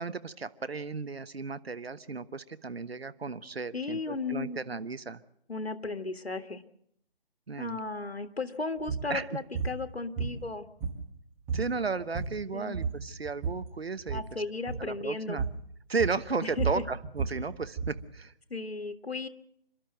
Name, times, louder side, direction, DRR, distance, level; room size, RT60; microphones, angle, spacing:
voice 1, 0.0-5.2 7.5-7.8 9.1-9.3 11.5-14.2 14.8-15.4 15.9-18.3, right 4 dB, 75° right, 14 dB, 1.2 m, -34 dB
voice 2, 3.7-4.6 5.5-6.6 7.6-10.7 12.5-12.8 14.1-15.4 16.4-16.8 18.5-19.3, left 3 dB, 85° left, 10 dB, 1.7 m, -35 dB
sound 1, 8.8-9.1 9.5-9.8 10.2-11.2 11.5-11.7 12.0-12.5 12.7-13.7 14.0-14.3 14.7-14.9 15.4-15.6 16.0-18.0, right 5 dB, 10° right, 1.6 m, -33 dB
27.5 x 12.5 x 7.8 m, 0.74 s
figure-of-eight pair, 155°, 30 cm